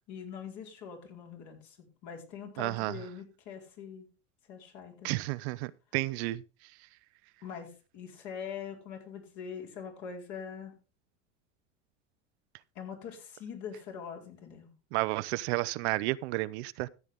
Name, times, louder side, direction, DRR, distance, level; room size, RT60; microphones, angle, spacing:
voice 1, 0.1-4.1 4.5-5.2 7.4-10.7 12.7-14.7, left 7 dB, 55° left, 4.5 m, -43 dB
voice 2, 2.6-3.0 5.0-6.4 14.9-16.9, right 20 dB, 65° right, 0.6 m, -32 dB
14.0 x 8.5 x 3.5 m
supercardioid pair, 110°, 36 cm